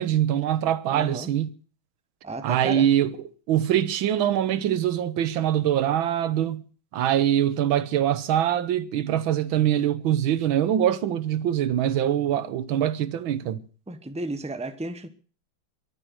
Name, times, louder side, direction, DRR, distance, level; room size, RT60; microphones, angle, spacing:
voice 1, 0.0-1.5 2.4-3.1 3.5-6.6 6.9-13.6, right 11 dB, 80° right, 1.8 m, -23 dB
voice 2, 0.9-1.3 2.2-2.9 13.9-15.1, right 2 dB, 10° right, 0.4 m, -33 dB
23.0 x 7.8 x 6.3 m
omnidirectional pair, 2.2 m